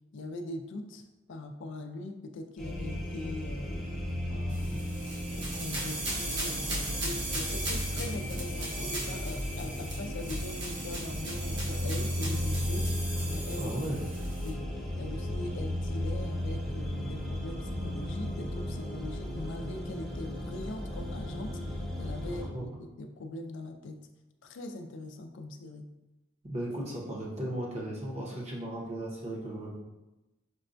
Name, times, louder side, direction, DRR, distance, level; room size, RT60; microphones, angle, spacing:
voice 1, 0.1-3.8 4.3-4.9 5.3-12.9 13.3-13.8 14.4-14.6 15.0-24.0 24.4-25.9, left 2 dB, 65° left, 5 dB, 0.4 m, -41 dB
sound 1, 2.6-22.5, left 1 dB, ahead, 0.6 m, -35 dB
sound 2, 4.5-14.5, right 2 dB, 65° right, 1.0 m, -38 dB
voice 2, 13.6-14.0 22.3-22.7 26.4-29.8, right 1 dB, 35° right, -3 dB, 0.8 m, -36 dB
5.2 x 2.2 x 2.5 m, 1.0 s
head